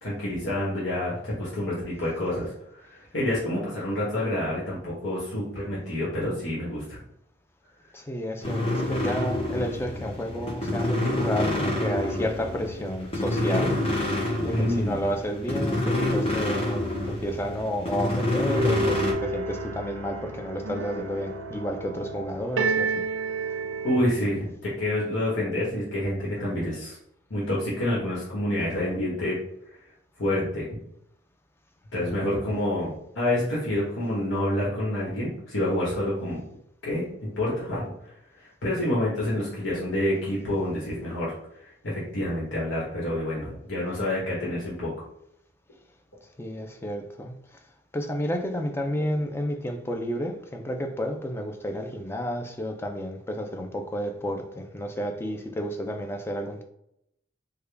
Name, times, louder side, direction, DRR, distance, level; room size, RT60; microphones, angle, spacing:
voice 1, 0.0-7.0 14.5-15.0 23.8-27.0 27.3-29.4 30.2-30.8 31.9-36.4 36.8-37.1 37.4-37.9 38.4-41.3 41.8-44.9, left 1 dB, 75° left, -6 dB, 1.2 m, -28 dB
voice 2, 7.9-13.8 14.4-23.0 31.9-32.2 46.4-47.3 47.9-56.6, equal, 15° left, 4 dB, 0.4 m, -31 dB
sound 1, 8.4-19.1, left 1 dB, 30° left, 0.8 m, -27 dB
sound 2, 18.5-24.3, right 2 dB, 90° right, 0.5 m, -30 dB
3.6 x 2.2 x 3.3 m, 0.77 s
head